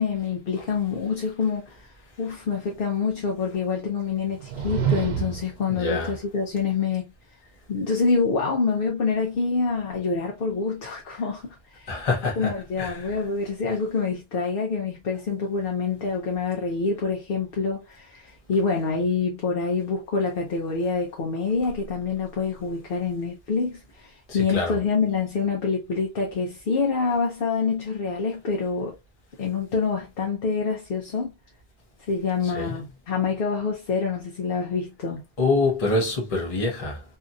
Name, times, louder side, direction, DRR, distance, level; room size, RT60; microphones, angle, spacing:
voice 1, 0.0-1.8 2.2-7.0 7.7-11.9 12.4-28.9 29.4-31.3 32.1-35.2, left 5 dB, 65° left, 0.8 m, -26 dB
sound 1, 4.3-5.6, right 8 dB, 80° right, 0.9 m, -27 dB
voice 2, 5.7-6.2 11.9-13.2 24.3-24.8 32.4-32.8 35.4-37.0, left 3 dB, 35° left, 0.9 m, -26 dB
2.7 x 2.6 x 2.3 m
omnidirectional pair, 1.0 m